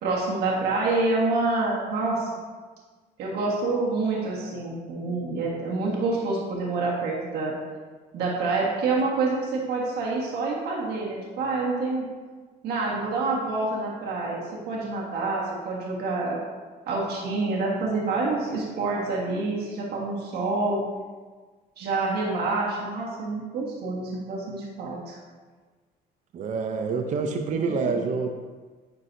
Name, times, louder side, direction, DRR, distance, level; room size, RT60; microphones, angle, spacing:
voice 1, 0.0-2.4 3.2-7.5 8.1-12.0 12.6-16.4 16.9-20.8 21.8-25.2 27.5-27.9, right 3 dB, 75° right, -4 dB, 1.5 m, -27 dB
voice 2, 26.3-28.3, right 4 dB, 45° right, 4 dB, 0.6 m, -27 dB
9.7 x 4.8 x 2.7 m, 1.4 s
cardioid pair, 110°, 17 cm